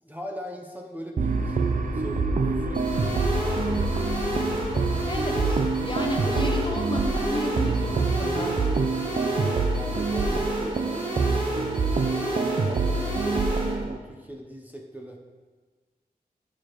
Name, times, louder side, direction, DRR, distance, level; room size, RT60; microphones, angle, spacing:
voice 1, 0.0-2.9 3.2-4.9 9.4-11.1 12.0-13.4 13.8-15.2, equal, 10° right, 0 dB, 0.7 m, -40 dB
sound 1, 1.2-13.1, left 3 dB, 55° left, 1.1 m, -36 dB
sound 2, 1.2-14.0, right 4 dB, 55° right, 0.5 m, -26 dB
sound 3, 2.7-13.7, right 1 dB, 30° right, 2.1 m, -31 dB
voice 2, 5.1-8.5, left 1 dB, 30° left, 2 dB, 0.9 m, -32 dB
8.4 x 4.8 x 3.0 m, 1.4 s
cardioid pair, 45°, 16 cm